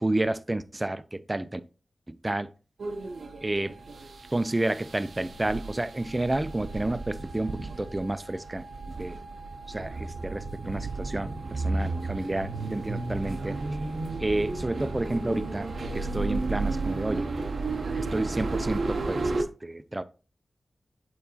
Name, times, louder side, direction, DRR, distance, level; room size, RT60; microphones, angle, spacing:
voice 1, 0.0-1.6 2.1-2.5 3.4-3.8 4.3-8.7 9.0-9.2 9.7-13.6 14.2-17.3 17.9-20.0, right 2 dB, 20° right, 0.4 m, -30 dB
sound 1, 2.8-19.4, right 3 dB, 75° right, 0.7 m, -33 dB
8.7 x 3.9 x 2.8 m
wide cardioid pair, 100°, 0 cm